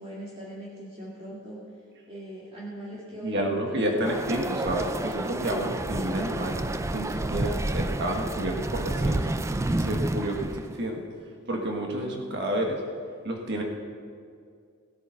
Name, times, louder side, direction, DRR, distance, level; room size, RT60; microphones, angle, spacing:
voice 1, 0.0-1.6 2.1-3.9, right 1 dB, 30° right, -7 dB, 2.2 m, -40 dB
voice 2, 3.2-6.6 6.9-9.3 9.7-11.0 11.5-12.8 13.2-13.6, right 1 dB, 55° right, 1 dB, 1.6 m, -30 dB
sound 1, 4.0-10.8, right 2 dB, 15° right, 0.4 m, -30 dB
17.5 x 8.7 x 5.8 m, 2.3 s
head